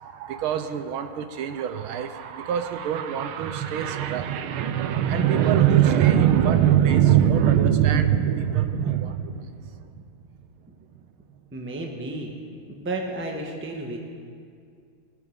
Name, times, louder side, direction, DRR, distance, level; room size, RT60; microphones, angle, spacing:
voice 1, 0.0-10.0, right 10 dB, 80° right, 9 dB, 1.5 m, -22 dB
voice 2, 11.5-12.4 12.7-14.0, right 2 dB, 10° right, 1 dB, 0.7 m, -32 dB
20.0 x 7.3 x 5.1 m, 2.3 s
omnidirectional pair, 2.4 m